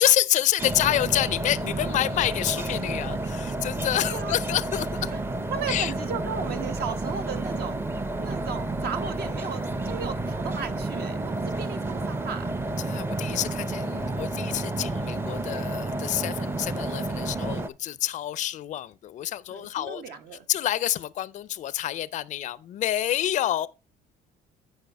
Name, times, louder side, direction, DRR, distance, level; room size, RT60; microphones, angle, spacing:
voice 1, 0.0-5.1 5.7-5.9 12.8-20.2 20.5-23.7, left 12 dB, 45° left, 0.4 m, -27 dB
sound 1, 0.6-17.7, right 2 dB, 15° right, 0.5 m, -30 dB
voice 2, 4.0-4.3 5.1-5.2 5.5-7.8 8.2-12.5 17.2-17.3 19.5-20.5, right 6 dB, 70° right, 1.2 m, -35 dB
9.0 x 5.2 x 4.6 m
cardioid pair, 110°, 17 cm